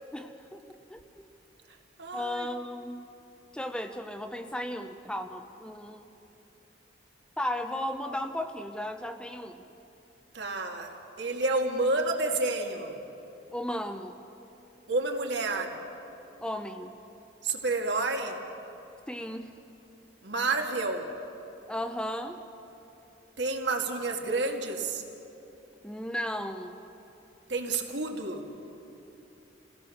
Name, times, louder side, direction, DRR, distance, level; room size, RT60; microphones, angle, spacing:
voice 1, 0.1-0.6 0.9-1.3 2.1-3.0 3.5-6.1 7.4-9.6 13.5-14.2 16.4-16.9 19.1-19.5 21.7-22.4 25.8-26.8, left 1 dB, 5° left, 6 dB, 0.7 m, -35 dB
voice 2, 2.0-2.5 10.3-13.0 14.9-15.8 17.4-18.4 20.2-21.1 23.4-25.0 27.5-28.5, right 3 dB, 70° right, 2 dB, 2.2 m, -30 dB
28.0 x 17.5 x 6.5 m, 3.0 s
head